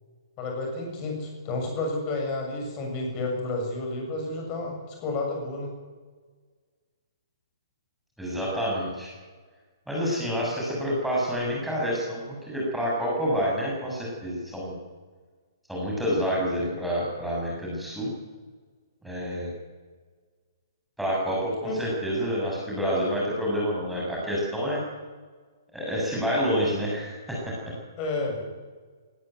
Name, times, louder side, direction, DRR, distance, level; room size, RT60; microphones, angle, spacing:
voice 1, 0.4-5.7 21.6-21.8 28.0-28.4, left 2 dB, 25° left, 1 dB, 6.8 m, -31 dB
voice 2, 8.2-9.1 9.9-14.8 15.7-18.1 19.0-19.5 21.0-24.8 25.7-27.4, equal, ahead, -5 dB, 7.1 m, -28 dB
19.5 x 16.0 x 9.3 m, 1.5 s
figure-of-eight pair, 125°, 2 cm